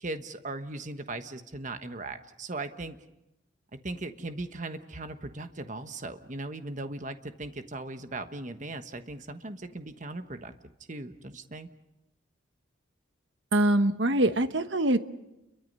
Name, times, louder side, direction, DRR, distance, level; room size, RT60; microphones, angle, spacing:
voice 1, 0.0-3.0 3.8-10.5 10.9-11.7, right 2 dB, 40° right, 8 dB, 1.3 m, -38 dB
voice 2, 13.5-15.0, right 1 dB, 65° right, 10 dB, 1.1 m, -23 dB
29.5 x 23.0 x 5.5 m, 0.92 s
head